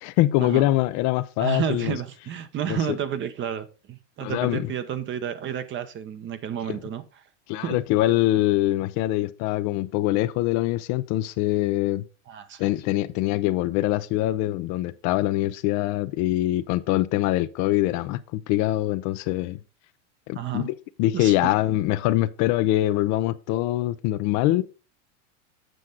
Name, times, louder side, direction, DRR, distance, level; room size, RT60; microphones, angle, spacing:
voice 1, 0.0-1.9 2.7-2.8 4.2-4.7 6.7-6.8 7.5-12.0 12.6-19.6 20.3-24.6, left 16 dB, 50° left, 0.6 m, -24 dB
voice 2, 1.4-7.0 7.6-7.8 12.3-12.7 20.3-20.7 21.1-21.5, right 9 dB, 30° right, 0.8 m, -31 dB
7.7 x 6.3 x 3.9 m
supercardioid pair, 125°, 38 cm